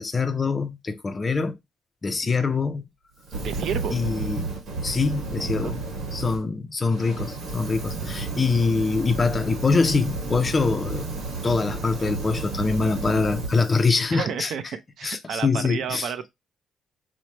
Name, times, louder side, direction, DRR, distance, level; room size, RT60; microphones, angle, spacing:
voice 1, 0.0-1.6 2.0-2.8 3.9-4.5 4.8-5.8 6.1-11.1 11.4-14.5 15.0-16.3, left 4 dB, 25° left, 0.4 m, -24 dB
Fire, 3.2-6.4 6.8-13.9, right 3 dB, 80° right, 1.3 m, -32 dB
voice 2, 3.4-4.0 5.4-5.7 8.0-8.1 12.8-12.9 14.1-14.6 15.0-16.3, right 7 dB, 60° right, 0.5 m, -31 dB
4.6 x 2.1 x 2.8 m
cardioid pair, 160°, 0 cm